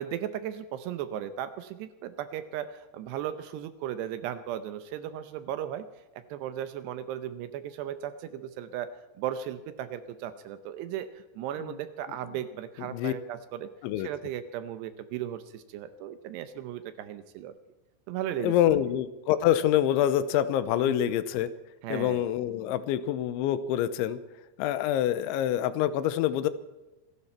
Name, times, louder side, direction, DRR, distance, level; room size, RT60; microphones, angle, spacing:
voice 1, 0.0-5.9 6.1-11.1 11.4-13.7 14.0-17.5 18.1-18.8 20.9-21.0 21.8-22.2, right 10 dB, 75° right, 11 dB, 2.7 m, -36 dB
voice 2, 18.4-21.5 21.9-24.2 24.6-26.5, left 11 dB, 85° left, 13 dB, 3.1 m, -26 dB
27.5 x 11.5 x 4.4 m, 1.0 s
omnidirectional pair, 5.4 m